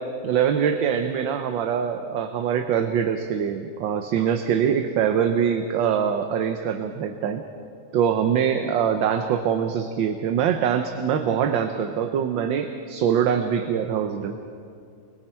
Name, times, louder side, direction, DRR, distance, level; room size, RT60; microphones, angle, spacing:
voice 1, 0.2-7.4 7.9-14.4, right 8 dB, 75° right, 6 dB, 1.6 m, -23 dB
28.5 x 22.0 x 4.5 m, 2.3 s
omnidirectional pair, 2.1 m